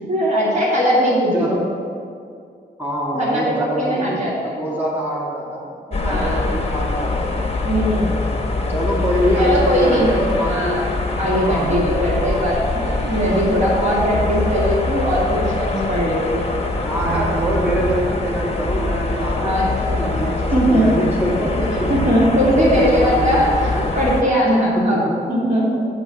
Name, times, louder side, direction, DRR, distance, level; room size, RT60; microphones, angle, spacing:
voice 1, 0.1-1.5 3.1-4.5 5.9-6.4 7.6-8.3 9.3-10.1 10.4-10.8 11.2-16.5 19.4-20.2 20.5-20.9 21.9-23.7 24.0-25.9, equal, 40° right, -5 dB, 1.9 m, -20 dB
voice 2, 1.3-1.8 2.8-5.7 6.1-7.3 8.7-10.8 11.4-12.5 16.8-21.9 22.5-23.9 24.9-25.1 25.6-25.8, equal, 10° right, -6 dB, 2.2 m, -24 dB
sound 1, 5.9-24.2, left 3 dB, 35° left, 1.0 m, -23 dB
sound 2, 12.8-18.1 18.7-19.2 19.9-21.3 21.6-23.6, right 3 dB, 70° right, 0.8 m, -33 dB
8.4 x 5.0 x 7.6 m, 2.3 s
wide cardioid pair, 125°, 18 cm